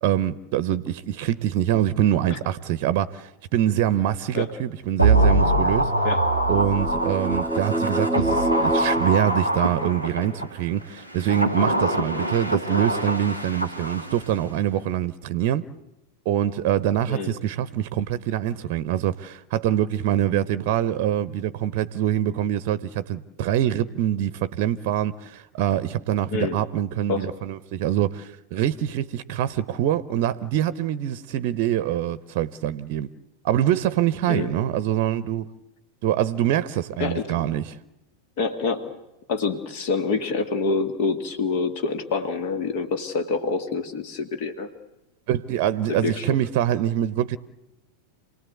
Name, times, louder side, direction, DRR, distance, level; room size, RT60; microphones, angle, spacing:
voice 1, 0.0-5.9 6.5-15.6 16.2-33.1 33.4-35.5 36.0-37.8 45.3-47.4, right 11 dB, 45° right, 0.8 m, -24 dB
sound 1, 5.0-10.5 11.1-14.3 14.6-14.7, right 1 dB, 90° left, 2.4 m, -23 dB
sound 2, 6.3-10.2, right 2 dB, ahead, 0.8 m, -28 dB
voice 2, 37.0-37.3 38.4-38.9 39.3-44.7 45.9-46.3, left 4 dB, 50° left, 2.0 m, -26 dB
28.0 x 19.0 x 8.2 m
figure-of-eight pair, 90°, 0 cm